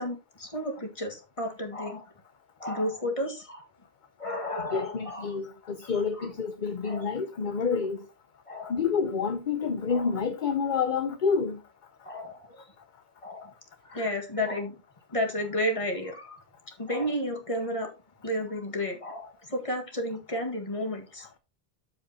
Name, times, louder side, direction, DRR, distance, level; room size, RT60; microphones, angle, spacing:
voice 1, 0.0-2.0 2.6-3.6 4.2-5.4 5.8-6.3 6.8-7.1 8.5-8.7 9.9-10.1 12.0-12.6 13.2-13.5 13.8-14.7 15.1-16.4 16.8-17.9 18.2-21.4, left 1 dB, 30° left, 1.9 m, -32 dB
voice 2, 4.7-8.0 8.7-11.6, left 5 dB, 55° left, 0.8 m, -28 dB
13.0 x 5.1 x 2.8 m
omnidirectional pair, 1.1 m